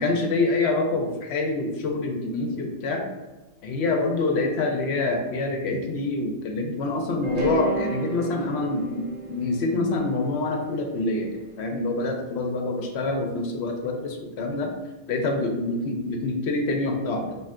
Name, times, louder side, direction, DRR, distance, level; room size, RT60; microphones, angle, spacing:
voice 1, 0.0-3.0 3.6-9.0 9.3-11.3 11.6-14.7 15.1-17.4, left 2 dB, 70° left, 3 dB, 0.8 m, -26 dB
sound 1, 7.2-11.4, right 3 dB, 40° right, 0.6 m, -32 dB
4.3 x 2.7 x 2.4 m, 1.1 s
omnidirectional pair, 1.2 m